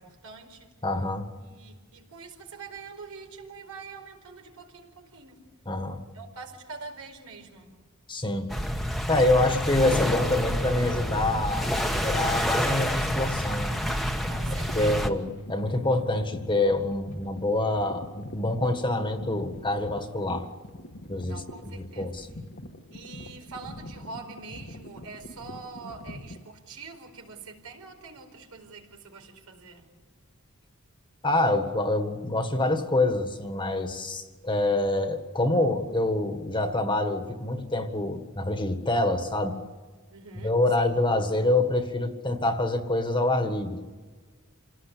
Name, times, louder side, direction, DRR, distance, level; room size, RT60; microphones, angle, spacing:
voice 1, 0.0-0.7 1.4-5.4 6.1-7.7 14.3-15.2 21.2-22.2 22.9-29.9 40.1-41.0, right 4 dB, 90° right, 3 dB, 4.8 m, -44 dB
voice 2, 0.8-1.3 5.7-6.0 8.1-8.5 9.1-13.7 14.8-20.5 21.1-21.4 21.8-22.3 31.2-39.6 40.4-43.8, left 2 dB, 20° left, 6 dB, 1.7 m, -26 dB
sound 1, 8.5-15.1, equal, ahead, 1.3 m, -28 dB
sound 2, 10.9-26.4, left 1 dB, 55° left, 1.6 m, -44 dB
28.0 x 18.0 x 8.5 m, 1.4 s
head